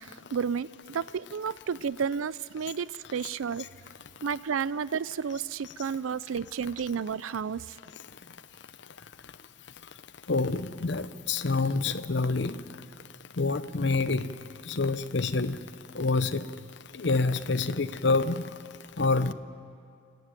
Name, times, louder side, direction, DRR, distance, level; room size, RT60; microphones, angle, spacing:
voice 1, 0.0-3.7 4.2-7.8, right 6 dB, 90° right, 0.4 m, -32 dB
voice 2, 10.3-12.6 13.4-14.3 14.7-15.6 16.0-16.4 17.0-18.4 19.0-19.3, left 3 dB, 60° left, 0.7 m, -27 dB
27.5 x 11.5 x 9.0 m
head